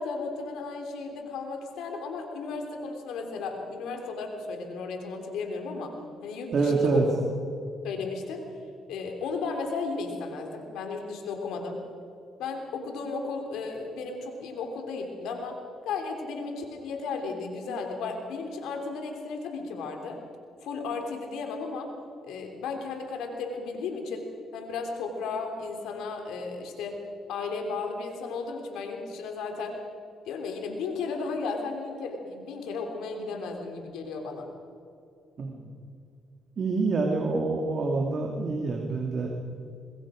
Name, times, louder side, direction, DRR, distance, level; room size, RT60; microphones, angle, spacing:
voice 1, 0.0-5.9 6.2-7.2 7.8-8.4 8.9-11.8 12.4-15.6 15.8-20.2 20.6-21.9 22.2-24.2 24.5-27.0 27.3-29.8 30.2-34.5, left 4 dB, 90° left, 3 dB, 3.2 m, -34 dB
voice 2, 6.5-7.1 35.4-35.7 36.6-39.3, right 3 dB, 50° right, 1 dB, 2.3 m, -26 dB
25.0 x 21.5 x 5.1 m, 2.5 s
cardioid pair, 90°, 0 cm